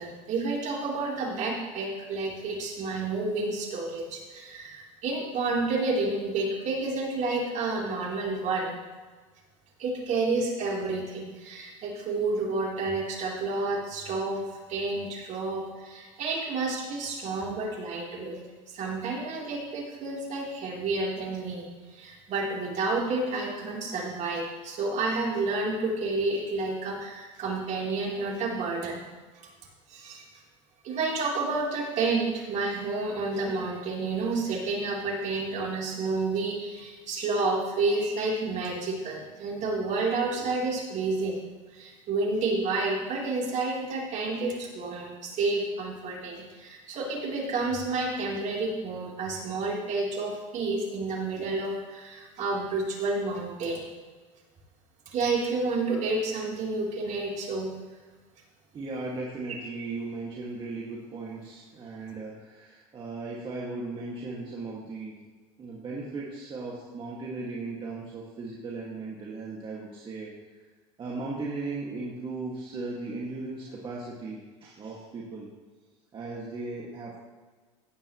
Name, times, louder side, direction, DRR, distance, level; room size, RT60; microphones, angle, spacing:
voice 1, 0.0-8.8 9.8-14.4 14.7-18.4 18.7-29.0 29.4-29.5 29.9-30.2 30.8-41.4 41.7-53.9 55.1-57.7, right 3 dB, 50° right, -3 dB, 3.6 m, -30 dB
voice 2, 58.7-65.2 65.6-70.3 71.0-75.5 76.1-77.2, right 3 dB, 30° right, -4 dB, 2.1 m, -37 dB
16.0 x 9.6 x 3.1 m, 1.4 s
supercardioid pair, 95°, 16 cm